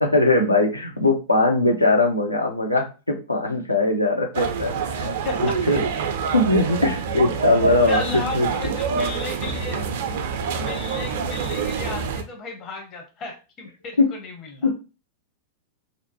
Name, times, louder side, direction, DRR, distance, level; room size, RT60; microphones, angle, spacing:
voice 1, 0.0-5.1 5.4-5.8 6.3-8.5 14.0-14.1 14.6-14.7, left 2 dB, 85° left, 3 dB, 0.5 m, -20 dB
sound 1, 4.3-12.2, right 6 dB, 55° right, 0.3 m, -26 dB
voice 2, 5.2-5.6 7.9-9.9 10.6-14.7, left 4 dB, 35° left, 2 dB, 0.7 m, -34 dB
2.6 x 2.1 x 2.8 m, 0.31 s
figure-of-eight pair, 90°, 0 cm